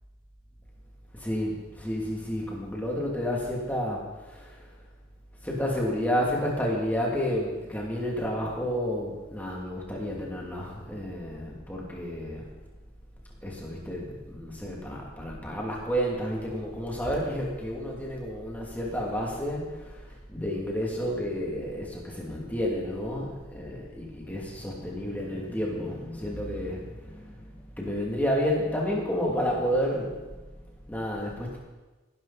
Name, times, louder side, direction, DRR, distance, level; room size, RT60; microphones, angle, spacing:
voice 1, 1.1-4.7 5.4-12.5 13.4-31.6, equal, 10° left, -3 dB, 2.7 m, -31 dB
18.0 x 12.0 x 4.2 m, 1.2 s
head